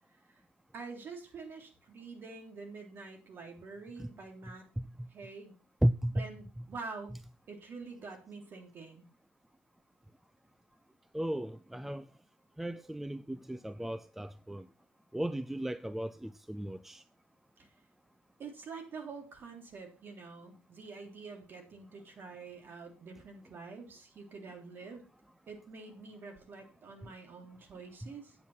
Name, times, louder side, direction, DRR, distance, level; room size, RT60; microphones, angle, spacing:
voice 1, 0.7-4.7 5.1-5.5 6.1-7.2 7.5-9.1 17.6-17.7 18.4-25.0 25.5-28.3, right 4 dB, 40° right, 3.4 m, -46 dB
voice 2, 5.8-6.3 6.6-6.7 11.1-12.0 12.6-14.6 15.1-17.0, right 1 dB, 5° right, 0.5 m, -34 dB
9.4 x 7.8 x 5.6 m
figure-of-eight pair, 60°, 6 cm